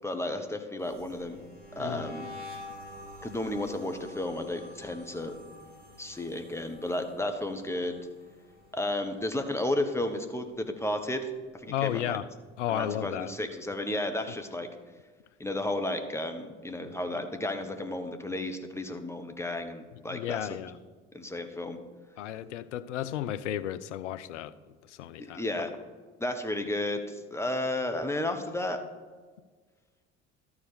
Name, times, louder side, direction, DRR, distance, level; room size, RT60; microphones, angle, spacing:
voice 1, 0.0-1.4 1.8-2.3 3.2-5.3 6.0-8.0 8.7-11.3 11.6-12.2 12.7-14.7 15.4-20.6 21.1-21.8 25.2-25.8 26.2-28.8, left 1 dB, 5° left, 1.1 m, -33 dB
sound 1, 0.8-10.0 10.3-10.7 11.0-12.6, left 1 dB, 25° right, 3.2 m, -48 dB
voice 2, 1.8-2.1 11.7-12.3 12.6-13.3 20.1-20.8 22.2-24.5 24.9-25.4, left 11 dB, 80° left, 0.5 m, -33 dB
12.5 x 4.8 x 5.0 m
hypercardioid pair, 60°, 36 cm